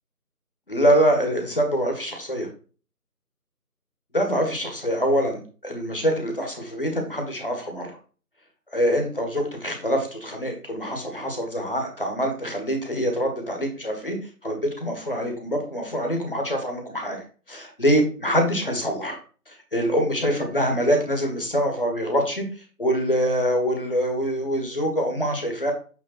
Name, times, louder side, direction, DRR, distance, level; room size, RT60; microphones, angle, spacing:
voice 1, 0.7-2.5 4.1-8.0 8.7-14.2 14.4-19.2 19.5-22.5 22.8-25.7, equal, 35° left, 3 dB, 1.7 m, -24 dB
8.5 x 3.5 x 4.4 m, 0.37 s
figure-of-eight pair, 170°, 47 cm